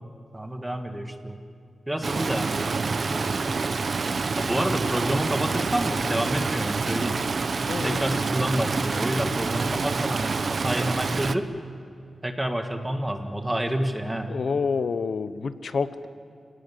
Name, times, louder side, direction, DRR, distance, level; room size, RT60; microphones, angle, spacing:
voice 1, 0.3-1.4 1.9-3.4 4.4-7.2 7.8-11.5 12.2-14.3, right 1 dB, 10° right, 5 dB, 1.8 m, -28 dB
Stream, 2.0-11.3, right 4 dB, 45° right, 0.8 m, -27 dB
voice 2, 7.7-8.2 14.3-16.1, left 5 dB, 60° left, 12 dB, 1.0 m, -28 dB
27.5 x 18.5 x 10.0 m, 2.5 s
wide cardioid pair, 155°, 0 cm